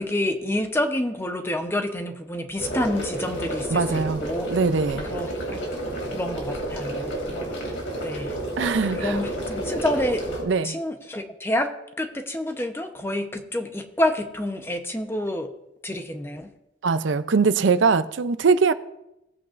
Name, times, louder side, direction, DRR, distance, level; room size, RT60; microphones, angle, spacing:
voice 1, 0.0-4.5 5.1-5.3 6.1-7.1 7.3-7.5 8.0-8.4 8.9-10.2 10.6-11.7 12.0-15.5 15.8-16.5, left 1 dB, 15° left, 0.8 m, -28 dB
sound 1, 2.6-10.4, right 1 dB, 90° left, 2.7 m, -30 dB
voice 2, 3.7-5.1 8.6-9.2 10.4-10.8 16.8-18.7, right 5 dB, 80° right, 0.5 m, -22 dB
17.5 x 8.6 x 2.5 m
head